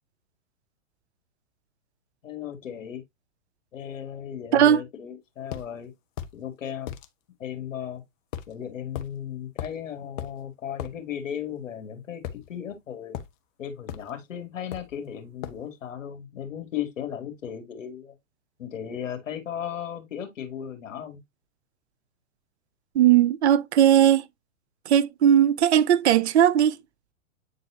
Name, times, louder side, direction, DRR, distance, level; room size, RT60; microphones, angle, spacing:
voice 1, 2.2-3.0 3.7-5.9 6.3-6.9 7.4-8.0 8.5-13.2 13.6-18.1 18.6-21.2, left 9 dB, 70° left, 2.2 m, -36 dB
sound 1, 5.5-5.7 6.2-6.4 6.9-7.1 8.3-8.5 8.9-9.1 9.6-9.8 10.2-10.3 10.8-10.9 12.2-12.8 13.1-13.3 13.9-14.1 14.7-15.0 15.4-15.6, left 10 dB, 40° left, 1.1 m, -36 dB
voice 2, 22.9-24.2 24.9-26.8, right 10 dB, 55° right, 0.6 m, -18 dB
9.0 x 4.0 x 2.7 m
hypercardioid pair, 115°, 40 cm